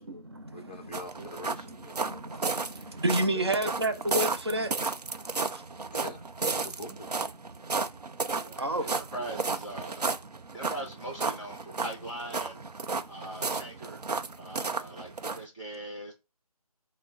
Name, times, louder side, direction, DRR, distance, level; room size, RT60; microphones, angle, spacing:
voice 1, 0.0-5.2 5.5-5.9 7.6-8.1 8.6-8.9 13.0-13.1 14.4-14.5, right 1 dB, 40° right, 0.9 m, -32 dB
voice 2, 0.5-2.2 3.3-3.4 5.9-7.2, left 2 dB, 15° left, 0.5 m, -44 dB
sound 1, 0.9-15.5, right 4 dB, 90° right, 0.7 m, -33 dB
voice 3, 8.4-10.1 10.5-14.0 14.4-16.1, right 1 dB, ahead, 1.8 m, -41 dB
6.0 x 2.2 x 3.9 m
figure-of-eight pair, 175°, 20 cm